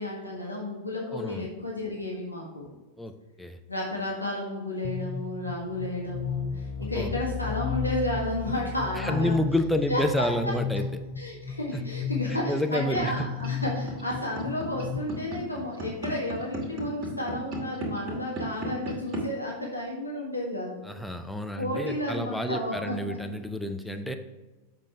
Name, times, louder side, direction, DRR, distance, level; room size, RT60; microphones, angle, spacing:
voice 1, 0.0-2.7 3.7-9.4 9.9-10.3 11.2-20.7 21.6-23.2, left 1 dB, 85° left, -2 dB, 1.4 m, -32 dB
voice 2, 1.1-1.5 3.0-3.6 6.9-7.1 9.0-10.8 12.3-13.1 20.9-24.1, left 1 dB, ahead, 6 dB, 0.7 m, -29 dB
sound 1, 4.8-15.0, left 6 dB, 40° left, 1.0 m, -34 dB
sound 2, 13.0-19.2, right 1 dB, 30° right, 2.4 m, -34 dB
7.5 x 6.7 x 3.4 m, 1.2 s
figure-of-eight pair, 90°, 0 cm